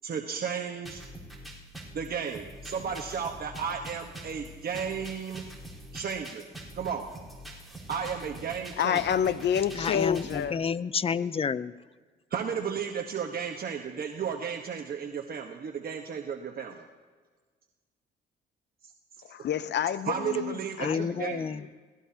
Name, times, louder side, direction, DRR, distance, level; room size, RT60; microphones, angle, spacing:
voice 1, 0.0-1.0 1.9-5.4 5.9-6.5 6.7-7.1 7.9-9.0 12.3-16.8 20.1-21.4, right 7 dB, 50° right, 1.2 m, -33 dB
sound 1, 0.8-10.4, right 1 dB, ahead, 4.1 m, -44 dB
voice 2, 8.8-10.6 19.2-21.8, left 9 dB, 60° left, 0.8 m, -29 dB
voice 3, 9.7-11.7 20.8-21.7, left 6 dB, 30° left, 0.5 m, -30 dB
27.5 x 18.0 x 2.8 m
cardioid pair, 90°, 20 cm